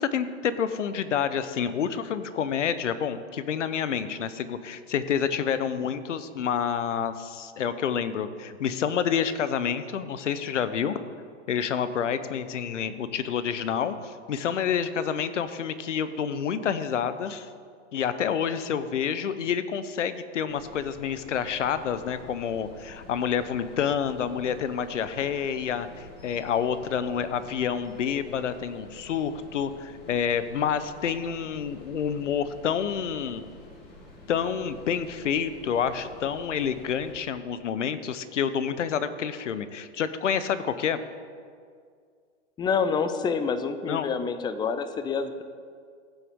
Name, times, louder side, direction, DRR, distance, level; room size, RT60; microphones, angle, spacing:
voice 1, 0.0-11.0 11.5-17.5 17.9-33.4 34.3-41.0 43.9-44.1, left 7 dB, 85° left, 12 dB, 0.8 m, -28 dB
sound 1, 20.5-37.1, left 1 dB, 50° left, 2.9 m, -49 dB
voice 2, 42.6-45.4, left 5 dB, 10° left, 11 dB, 0.4 m, -27 dB
15.5 x 7.1 x 3.6 m, 2.1 s
hypercardioid pair, 115°, 36 cm